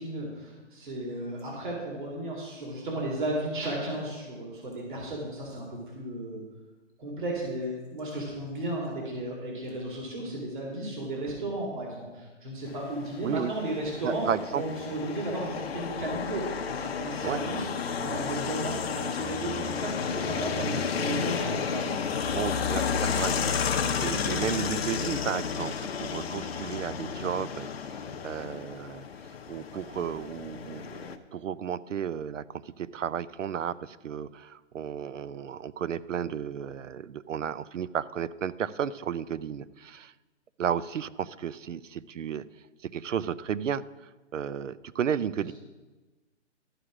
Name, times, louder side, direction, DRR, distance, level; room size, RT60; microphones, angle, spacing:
voice 1, 0.0-6.4 7.0-17.7 18.0-22.0, right 1 dB, 40° right, -2 dB, 2.4 m, -34 dB
sound 1, 12.7-31.2, left 6 dB, 55° left, 0.8 m, -32 dB
voice 2, 13.2-13.5 14.0-14.6 17.2-17.4 21.5-21.6 22.3-29.0 29.5-40.1 40.6-42.5 42.8-43.9 44.3-45.5, right 8 dB, 85° right, 18 dB, 0.6 m, -33 dB
13.0 x 4.9 x 6.1 m, 1.2 s
hypercardioid pair, 165°, 37 cm